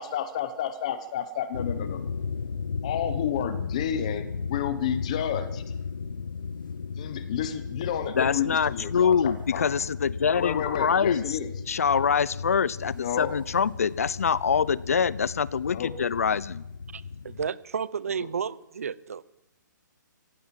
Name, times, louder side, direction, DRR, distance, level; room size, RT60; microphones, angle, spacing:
voice 1, 0.0-2.1 2.8-5.6 7.0-9.7 10.3-11.5 12.9-13.3 15.7-15.9 18.2-18.3, left 9 dB, 20° left, 1.0 m, -31 dB
sound 1, 1.5-17.5, left 5 dB, 90° left, 1.1 m, -35 dB
voice 2, 8.2-11.4 11.7-16.6, left 6 dB, 45° left, 0.7 m, -25 dB
voice 3, 16.9-19.2, right 6 dB, 45° right, 0.8 m, -32 dB
24.5 x 15.5 x 7.6 m
hypercardioid pair, 180°, 11 cm